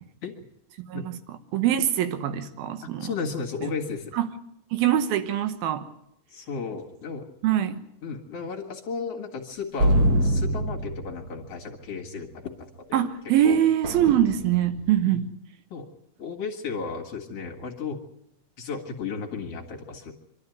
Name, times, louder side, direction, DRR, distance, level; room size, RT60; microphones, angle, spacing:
voice 1, 0.9-3.1 3.6-3.7 4.1-4.3 4.7-5.9 7.4-7.8 12.9-15.3, right 10 dB, 85° right, 3.1 m, -23 dB
voice 2, 2.8-4.2 6.3-7.3 8.0-13.0 13.4-13.6 15.1-15.2 15.7-15.9 16.2-18.0 18.6-20.1, left 5 dB, 50° left, 2.5 m, -34 dB
sound 1, 9.8-11.6 13.8-14.8, right 1 dB, 55° right, 1.0 m, -24 dB
25.0 x 13.0 x 9.3 m
omnidirectional pair, 4.2 m